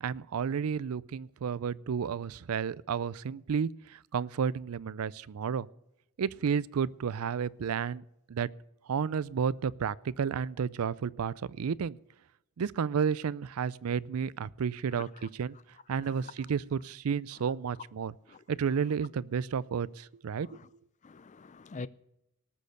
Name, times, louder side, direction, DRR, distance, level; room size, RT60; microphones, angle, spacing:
voice 1, 0.0-5.7 6.2-8.5 8.9-12.0 12.6-15.6 15.9-18.1 18.5-20.6, right 6 dB, 80° right, 0.4 m, -32 dB
voice 2, 21.0-21.9, left 4 dB, 35° left, 0.5 m, -44 dB
18.5 x 6.5 x 6.7 m
head